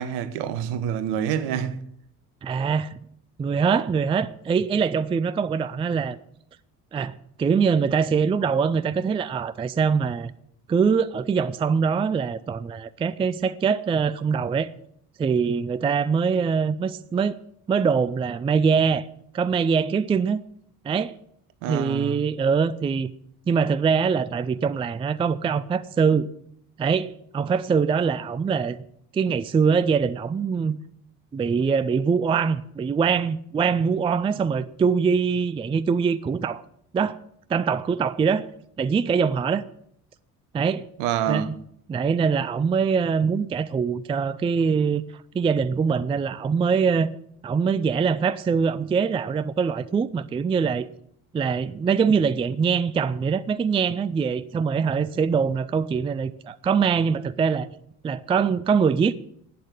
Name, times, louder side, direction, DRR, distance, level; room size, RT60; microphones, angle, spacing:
voice 1, 0.0-1.8 21.6-22.2 41.0-41.5, right 9 dB, 60° right, 1.1 m, -27 dB
voice 2, 2.4-3.0 3.4-6.2 6.9-7.1 7.4-10.3 10.7-14.7 15.2-17.4 17.7-19.0 19.3-20.4 20.8-21.1 21.7-23.1 23.5-26.3 26.8-28.8 29.1-30.8 31.3-36.6 36.9-37.2 37.5-38.4 38.8-39.6 40.5-40.8 41.3-41.5 41.9-45.0 45.3-47.1 47.4-50.9 51.3-57.7 58.0-59.1, right 6 dB, 15° right, 0.4 m, -23 dB
12.0 x 8.6 x 7.5 m
figure-of-eight pair, 50°, 46 cm